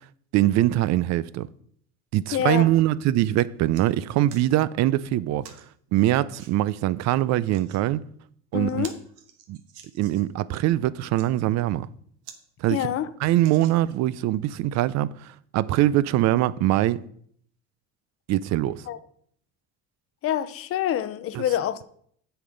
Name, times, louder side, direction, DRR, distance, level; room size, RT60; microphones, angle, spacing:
voice 1, 0.3-1.5 2.1-5.4 5.9-8.0 8.5-8.9 9.5-9.6 10.0-11.9 12.6-12.9 13.2-17.0 18.3-18.8 21.3-21.4, right 14 dB, 60° right, 0.5 m, -23 dB
voice 2, 2.3-2.7 8.5-8.9 12.7-13.1 18.9-19.0 20.2-21.8, left 11 dB, 45° left, 0.7 m, -26 dB
sound 1, 3.7-3.9 4.3-4.5 5.4-5.7 6.3-6.5 7.3-7.8 8.3-8.4 8.7-10.3 11.0-11.3 11.8-11.9 12.2-12.4 12.8-12.9 13.4-14.1 14.8-14.9, right 8 dB, 75° right, 1.3 m, -47 dB
7.9 x 7.0 x 5.2 m
cardioid pair, 120°, 32 cm